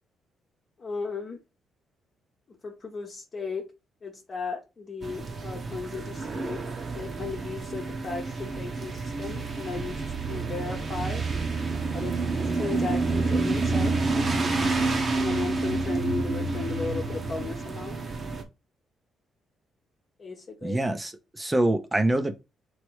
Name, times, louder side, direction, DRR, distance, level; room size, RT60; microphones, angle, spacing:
voice 1, 0.8-1.4 2.5-3.7 4.0-6.6 6.9-10.0 10.3-11.2 11.9-13.9 15.1-18.0 20.2-20.8, left 4 dB, 40° left, 1.0 m, -36 dB
sound 1, 5.0-18.4, right 3 dB, 40° right, 1.0 m, -29 dB
voice 2, 20.6-22.4, right 1 dB, 15° right, 0.7 m, -25 dB
3.2 x 3.0 x 4.5 m
cardioid pair, 90°, 0 cm